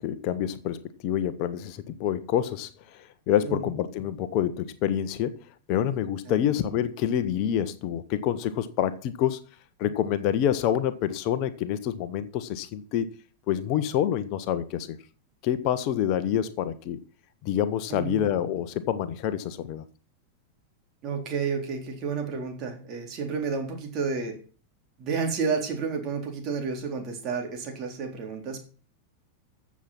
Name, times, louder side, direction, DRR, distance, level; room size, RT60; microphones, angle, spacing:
voice 1, 0.0-5.4 5.7-9.4 9.8-13.1 13.5-15.0 15.4-17.0 17.4-19.8, left 10 dB, 40° left, 1.1 m, -27 dB
voice 2, 6.3-6.6 17.9-18.2 21.0-24.4 25.0-28.6, right 5 dB, 35° right, 3.9 m, -31 dB
14.5 x 7.4 x 5.9 m
figure-of-eight pair, 90°, 0 cm